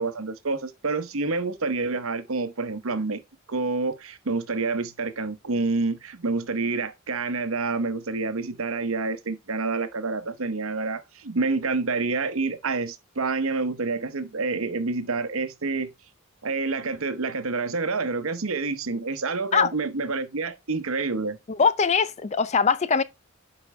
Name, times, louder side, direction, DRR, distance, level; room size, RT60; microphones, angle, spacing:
voice 1, 0.0-3.2 3.5-15.9 16.4-21.4, right 3 dB, 80° right, 0.9 m, -28 dB
voice 2, 21.5-23.0, left 5 dB, 30° left, 0.4 m, -21 dB
8.3 x 5.3 x 3.2 m
head